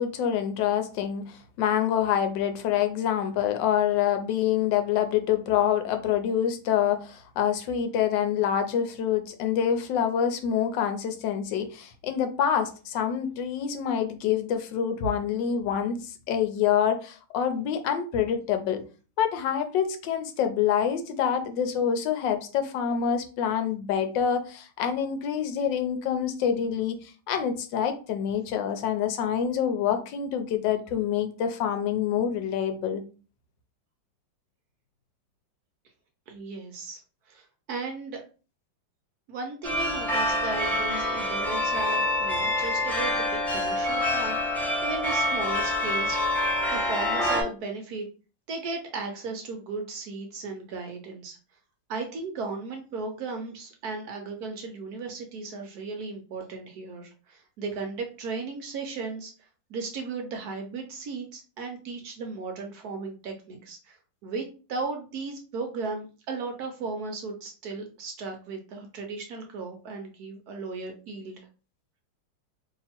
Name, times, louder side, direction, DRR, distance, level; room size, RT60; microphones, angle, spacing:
voice 1, 0.0-18.8 19.2-33.0, left 8 dB, 80° left, 1.3 m, -26 dB
voice 2, 36.3-37.0 37.3-38.2 39.3-48.0 48.5-51.4 51.9-59.3 59.7-64.0 64.2-71.4, right 4 dB, 65° right, 1.1 m, -36 dB
sound 1, 39.6-47.4, left 1 dB, ahead, 0.8 m, -26 dB
3.0 x 2.8 x 4.2 m
omnidirectional pair, 2.0 m